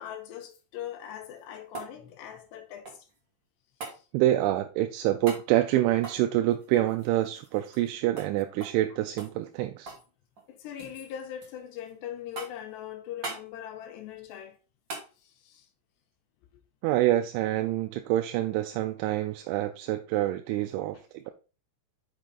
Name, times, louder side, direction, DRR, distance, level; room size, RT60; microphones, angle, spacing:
voice 1, 0.0-3.1 3.9-4.1 10.5-14.6 15.2-15.7, left 10 dB, 75° left, 2.8 m, -41 dB
sound 1, 1.1-3.2 3.8-4.0 5.2-5.5 5.9-7.9 8.2-8.3 8.6-8.8 9.2-10.1 10.3-11.0 11.4-11.9 12.3-12.7 13.2-13.5 14.9-15.1 17.5-17.6, right 3 dB, 70° right, 1.1 m, -42 dB
voice 2, 4.1-9.9 16.8-21.3, right 14 dB, 85° right, 2.9 m, -26 dB
6.3 x 5.9 x 4.1 m
omnidirectional pair, 5.6 m